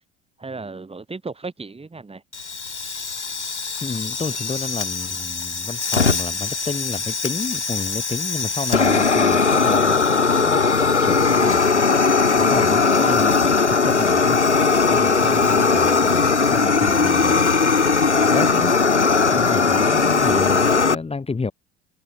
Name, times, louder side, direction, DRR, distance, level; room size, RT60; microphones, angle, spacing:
voice 1, 0.4-2.2 15.2-15.4, right 3 dB, 15° right, 5.1 m, -35 dB
Fire, 2.3-20.9, left 4 dB, 85° left, 1.9 m, -19 dB
voice 2, 3.8-12.0 12.3-14.4 14.8-17.5 18.1-18.7 19.3-21.5, left 4 dB, 15° left, 2.9 m, -30 dB
figure-of-eight pair, 60°, 34 cm